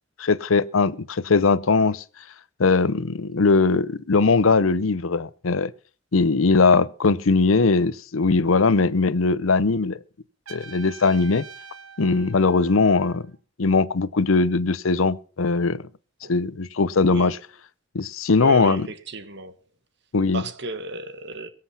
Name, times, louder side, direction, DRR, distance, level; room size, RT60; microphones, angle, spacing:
voice 1, 0.2-2.0 2.6-5.7 6.1-10.0 10.5-11.4 12.0-13.2 13.6-15.8 16.3-17.4 17.9-18.9 20.1-20.4, left 4 dB, 85° left, 0.7 m, -20 dB
Trumpet, 10.5-13.3, right 5 dB, 80° right, 1.6 m, -45 dB
voice 2, 17.0-17.3 18.4-19.5 20.3-21.5, right 1 dB, 60° right, 1.6 m, -34 dB
23.0 x 7.8 x 5.7 m
head